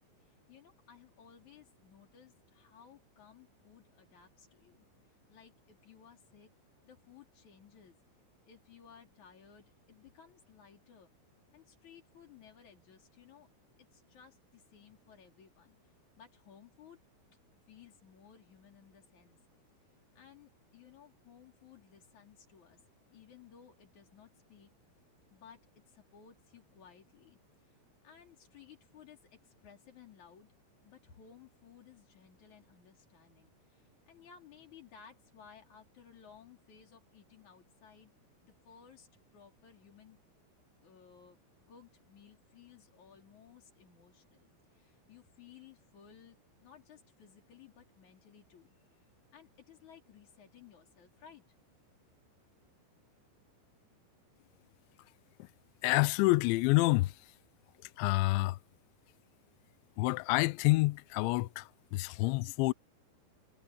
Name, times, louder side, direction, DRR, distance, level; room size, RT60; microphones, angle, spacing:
voice 1, 0.2-4.9 5.3-6.5 6.8-8.0 8.5-11.1 11.5-13.5 13.8-17.0 17.7-19.4 20.1-22.8 23.1-24.7 25.3-27.8 28.0-30.5 30.8-38.1 38.4-40.2 40.8-41.4 41.7-49.0 49.3-51.5, left 8 dB, 40° left, 4.5 m, -58 dB
voice 2, 55.8-57.1 58.0-58.6 60.0-62.7, left 21 dB, 80° left, 2.7 m, -28 dB
omnidirectional pair, 5.9 m